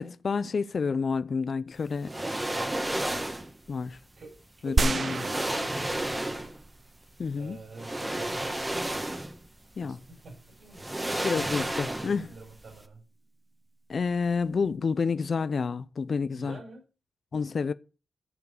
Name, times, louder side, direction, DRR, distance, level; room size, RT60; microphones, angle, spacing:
voice 1, 0.0-2.1 3.7-4.0 4.6-5.2 7.2-7.6 9.8-10.0 11.2-12.2 13.9-16.6 17.3-17.7, left 5 dB, 50° left, 0.5 m, -29 dB
sound 1, 2.0-3.5 4.6-4.7 5.1-6.7 7.7-9.5 9.8-9.9 10.7-12.4 12.6-12.8, right 1 dB, 15° right, 1.2 m, -32 dB
voice 2, 3.9-4.3 4.6-6.5 7.3-8.7 9.9-10.0 10.2-13.0 16.3-16.8, right 2 dB, 60° right, 4.9 m, -46 dB
sound 2, 4.8-6.5 7.0-7.1, right 4 dB, 40° right, 0.6 m, -29 dB
14.0 x 4.8 x 6.5 m
wide cardioid pair, 125°, 0 cm